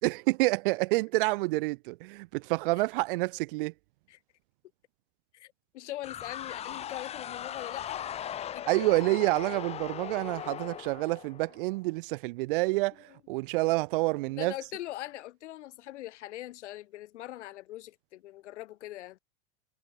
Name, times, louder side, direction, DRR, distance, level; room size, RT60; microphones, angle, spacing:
voice 1, 0.0-3.7 8.7-14.5, right 22 dB, 50° right, 0.6 m, -28 dB
voice 2, 5.3-8.0 8.5-9.0 14.4-19.2, left 15 dB, 85° left, 1.8 m, -42 dB
sound 1, 6.0-11.8, left 10 dB, 20° left, 1.2 m, -39 dB
supercardioid pair, 160°, 34 cm